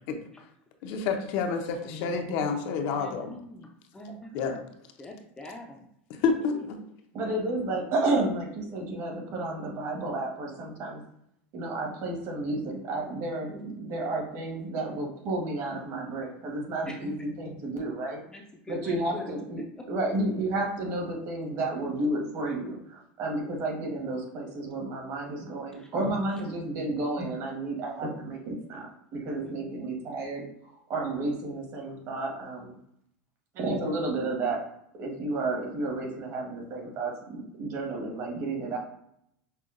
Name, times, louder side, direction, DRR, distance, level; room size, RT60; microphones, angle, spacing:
voice 1, 0.8-3.3 4.3-4.6 6.2-6.8, left 5 dB, 60° left, 5 dB, 0.6 m, -28 dB
voice 2, 2.9-3.7 3.9-4.6 5.0-5.9 6.4-6.6 13.4-13.8 16.9-17.2 18.3-19.3 19.8-19.9 25.7-25.9 29.4-29.8, left 2 dB, 10° left, 1 dB, 0.5 m, -43 dB
voice 3, 7.1-11.0 11.5-18.2 18.7-19.6 19.9-30.4 30.9-32.7 33.5-34.6 35.0-38.8, right 2 dB, 50° right, -1 dB, 1.4 m, -31 dB
5.5 x 2.2 x 2.5 m, 0.74 s
supercardioid pair, 125°, 6 cm